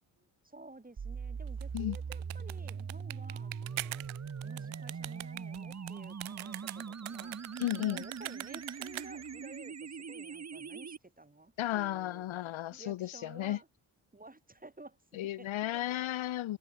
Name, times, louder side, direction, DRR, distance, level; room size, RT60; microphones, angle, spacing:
voice 1, 0.2-4.1 4.4-7.5 7.8-12.3 12.7-13.7 14.1-16.0, right 2 dB, 20° right, 6.5 m, -53 dB
sound 1, 1.0-11.0, right 6 dB, 35° right, 1.4 m, -41 dB
sound 2, 1.5-9.4, right 19 dB, 90° right, 0.7 m, -43 dB
voice 2, 7.6-8.0 11.6-13.6 15.1-16.6, left 14 dB, 85° left, 1.6 m, -34 dB
cardioid pair, 65°, 47 cm